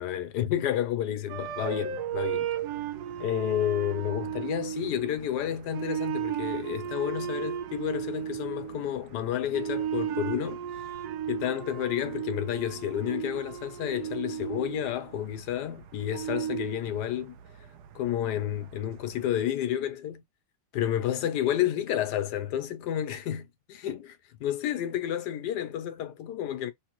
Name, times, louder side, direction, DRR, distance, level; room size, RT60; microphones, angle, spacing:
voice 1, 0.0-2.5 3.2-10.6 11.3-17.3 17.9-20.2 20.7-26.7, left 11 dB, 75° left, 1.2 m, -30 dB
sound 1, 1.3-19.4, right 9 dB, 70° right, 1.1 m, -35 dB
3.2 x 3.0 x 2.9 m
omnidirectional pair, 1.9 m